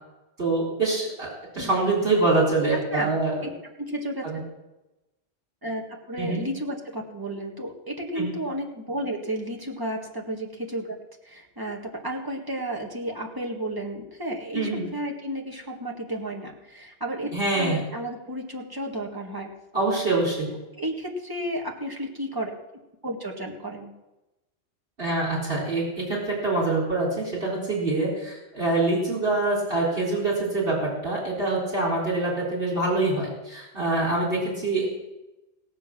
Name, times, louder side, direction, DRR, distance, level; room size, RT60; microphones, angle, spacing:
voice 1, 0.4-1.3 1.5-3.3 4.2-4.4 6.2-6.4 8.2-8.3 14.5-14.8 17.3-17.8 19.7-20.5 25.0-34.9, right 2 dB, 55° right, -4 dB, 4.4 m, -25 dB
voice 2, 3.8-4.4 5.6-5.8 6.1-11.0 11.2-19.5 20.7-22.5 23.0-23.9, right 1 dB, 20° right, 0 dB, 1.8 m, -32 dB
17.5 x 7.7 x 6.1 m, 1.0 s
omnidirectional pair, 1.2 m